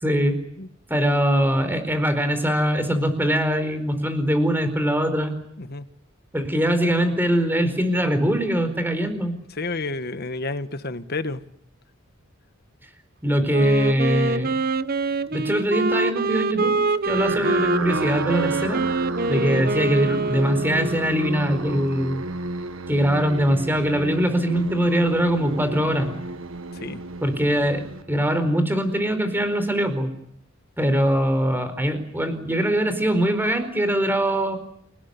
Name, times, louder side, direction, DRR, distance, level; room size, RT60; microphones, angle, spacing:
voice 1, 0.0-0.4 0.9-5.3 6.3-9.4 13.2-14.5 15.3-16.8 17.0-18.8 19.3-22.2 22.9-26.1 27.2-27.8 28.1-30.1 30.8-34.6, equal, 10° right, 10 dB, 4.5 m, -22 dB
voice 2, 9.5-11.4 17.3-17.6 26.7-27.0, left 3 dB, 50° left, 12 dB, 1.5 m, -30 dB
Wind instrument woodwind instrument, 13.5-21.3, right 3 dB, 50° right, 1.0 m, -25 dB
sound 1, 17.1-28.5, right 2 dB, 80° right, 1.5 m, -32 dB
29.0 x 18.5 x 9.7 m, 0.73 s
head